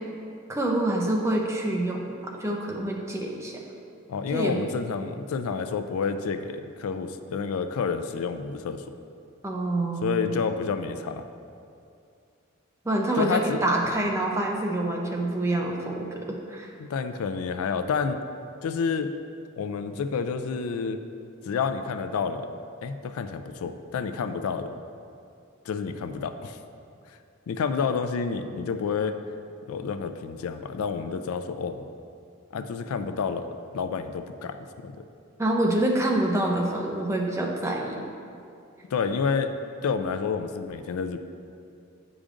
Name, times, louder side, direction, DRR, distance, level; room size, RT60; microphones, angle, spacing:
voice 1, 0.5-3.6 4.3-4.6 9.4-10.4 12.8-16.7 35.4-38.1, right 1 dB, 15° right, -1 dB, 0.5 m, -26 dB
voice 2, 4.1-8.8 10.0-11.2 13.2-13.6 16.8-18.2 18.6-19.1 19.6-21.0 21.4-22.5 22.8-24.7 25.7-26.6 27.5-29.2 29.7-31.9 32.5-34.6 34.8-34.9 38.9-39.5 39.8-41.2, left 5 dB, 90° left, 9 dB, 0.3 m, -29 dB
8.5 x 5.0 x 2.5 m, 2.5 s
head